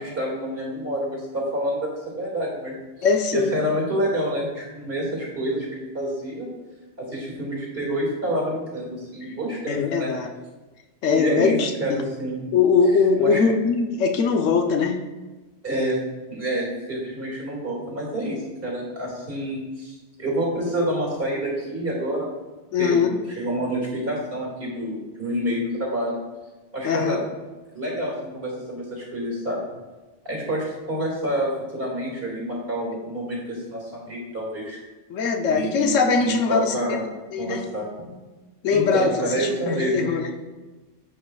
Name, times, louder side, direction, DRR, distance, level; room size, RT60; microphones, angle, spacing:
voice 1, 0.0-3.1 3.3-6.5 7.0-10.1 11.1-12.4 13.2-13.4 15.6-16.0 16.3-22.3 22.8-26.2 26.7-27.2 27.7-29.7 30.2-34.8 35.5-37.0 37.4-37.9 38.7-40.1, right 1 dB, 50° right, -2 dB, 2.3 m, -28 dB
voice 2, 3.0-3.5 9.7-10.3 11.0-12.0 12.5-15.0 22.7-23.2 26.8-27.2 35.1-37.0 37.3-37.6 38.6-40.3, left 5 dB, 85° left, 4 dB, 1.1 m, -21 dB
11.5 x 5.0 x 2.3 m, 1.2 s
omnidirectional pair, 1.3 m